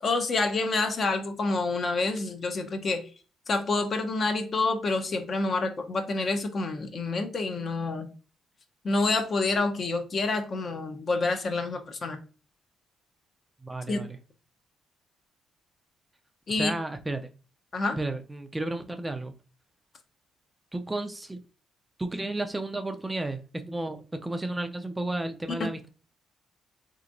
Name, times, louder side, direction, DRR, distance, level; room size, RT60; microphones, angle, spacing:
voice 1, 0.0-3.1 3.5-8.1 8.8-12.2 13.9-14.0 16.5-16.7 17.7-18.0, left 3 dB, 45° left, 0.6 m, -28 dB
voice 2, 13.6-14.2 16.5-17.3 17.9-19.3 20.7-21.4 22.0-25.9, right 2 dB, 15° right, 0.4 m, -33 dB
3.4 x 2.9 x 2.5 m
cardioid pair, 90°, 0 cm